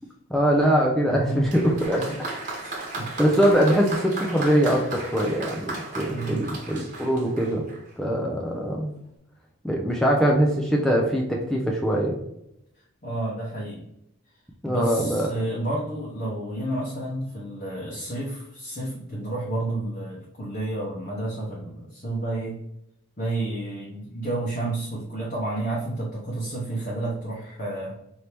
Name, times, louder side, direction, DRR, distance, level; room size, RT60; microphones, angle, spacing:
voice 1, 0.3-2.3 3.2-7.7 8.0-8.9 9.6-12.2 14.6-15.3, equal, ahead, -2 dB, 0.4 m, -22 dB
voice 2, 1.1-2.2 2.6-3.1 6.1-6.5 13.0-13.8 14.7-22.6 23.2-27.9, right 1 dB, 40° left, -5 dB, 0.8 m, -30 dB
Applause, 1.5-8.0 8.9-9.0, right 2 dB, 35° right, 1.2 m, -35 dB
4.5 x 2.7 x 3.3 m, 0.80 s
head